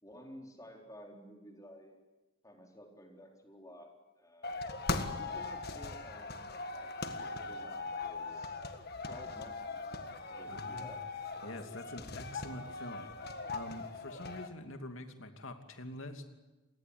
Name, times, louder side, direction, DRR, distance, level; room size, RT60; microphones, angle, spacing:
voice 1, 0.0-2.0 2.4-4.6 5.1-6.4 6.7-8.6 9.1-11.1, equal, 15° left, 1 dB, 4.0 m, -53 dB
sound 1, 4.4-14.5, left 3 dB, 45° left, 1.7 m, -40 dB
voice 2, 10.5-11.0 11.4-16.3, left 1 dB, 65° left, 6 dB, 2.7 m, -46 dB
28.0 x 18.5 x 9.7 m, 1.1 s
head